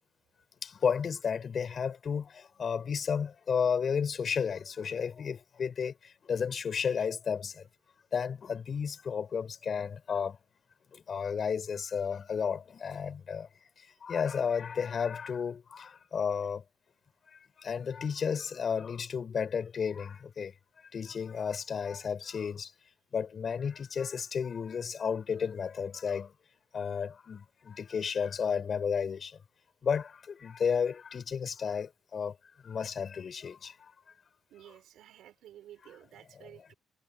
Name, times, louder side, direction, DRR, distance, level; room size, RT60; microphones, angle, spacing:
voice 1, 0.6-5.9 6.3-7.5 8.1-10.4 11.1-13.5 14.0-16.6 17.6-20.5 20.9-22.7 23.1-26.3 26.7-29.3 29.8-32.3 32.6-33.7, left 6 dB, 50° left, 6.9 m, -32 dB
voice 2, 34.5-36.7, right 12 dB, 80° right, 5.1 m, -53 dB
cardioid pair, 90°, 0 cm